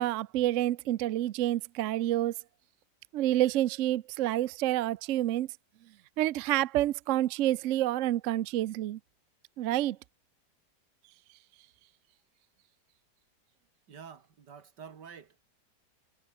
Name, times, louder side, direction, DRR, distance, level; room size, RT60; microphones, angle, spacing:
voice 1, 0.0-2.3 3.1-5.5 6.2-9.0 9.6-10.0, right 14 dB, 65° right, 0.8 m, -28 dB
voice 2, 13.9-15.4, right 7 dB, 85° right, 2.4 m, -48 dB
omnidirectional pair, 1.8 m